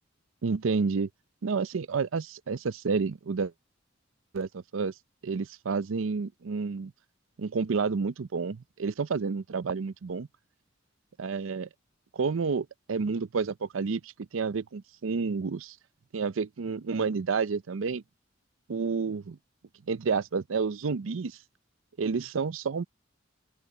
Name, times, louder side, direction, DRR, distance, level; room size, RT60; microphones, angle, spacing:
voice 1, 0.4-1.1 1.4-3.5 4.3-4.9 5.2-6.9 7.4-10.3 11.2-11.7 12.1-15.8 16.1-18.0 18.7-19.4 19.9-21.4 22.0-22.8, right 5 dB, 90° right, 0.5 m, -30 dB
open air
head